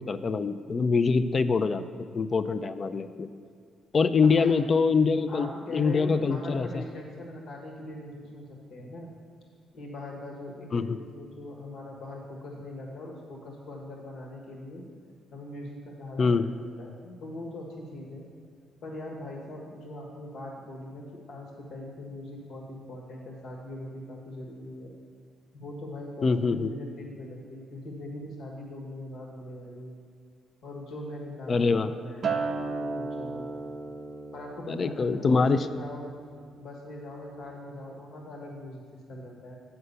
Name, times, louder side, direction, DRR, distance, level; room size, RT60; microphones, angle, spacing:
voice 1, 0.0-1.8 2.1-3.3 3.9-6.8 10.7-11.0 16.2-16.5 26.2-26.7 31.5-31.9 34.7-35.7, left 4 dB, 40° left, 11 dB, 0.4 m, -24 dB
voice 2, 5.3-9.1 9.7-14.8 15.3-18.3 18.8-24.9 25.5-30.0 30.6-33.5 34.3-36.1 36.6-38.8 39.1-39.5, left 1 dB, 75° left, -1 dB, 1.4 m, -41 dB
Acoustic guitar, 32.2-36.7 37.0-37.4, right 4 dB, 55° right, 0.6 m, -35 dB
7.7 x 5.8 x 6.8 m, 2.2 s
cardioid pair, 90°, 0 cm